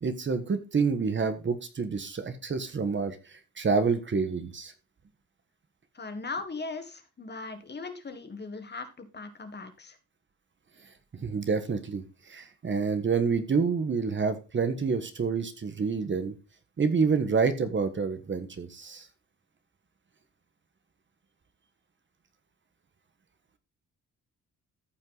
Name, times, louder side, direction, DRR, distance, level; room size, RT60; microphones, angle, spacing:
voice 1, 0.0-4.7 11.1-16.3 16.8-19.1, right 5 dB, 40° right, 9 dB, 1.4 m, -28 dB
voice 2, 5.9-10.0, left 3 dB, 35° left, 9 dB, 1.7 m, -39 dB
14.0 x 5.4 x 4.0 m, 0.30 s
cardioid pair, 100°, 31 cm